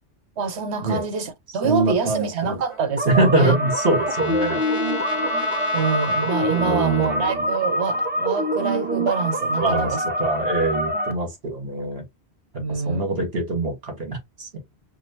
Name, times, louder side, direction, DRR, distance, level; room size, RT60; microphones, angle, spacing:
voice 1, 0.4-3.5 5.3-5.4 5.7-10.0 10.9-11.0 12.6-13.0, right 5 dB, 80° right, 1.1 m, -26 dB
voice 2, 1.6-2.6 3.1-4.6 6.5-7.3 9.6-12.0 12.7-14.5, right 2 dB, 65° right, 1.9 m, -24 dB
Trumpet, 2.7-7.4, left 4 dB, 35° left, 0.6 m, -33 dB
sound 1, 3.0-11.1, equal, 15° right, 0.4 m, -25 dB
5.9 x 2.1 x 2.8 m
omnidirectional pair, 1.1 m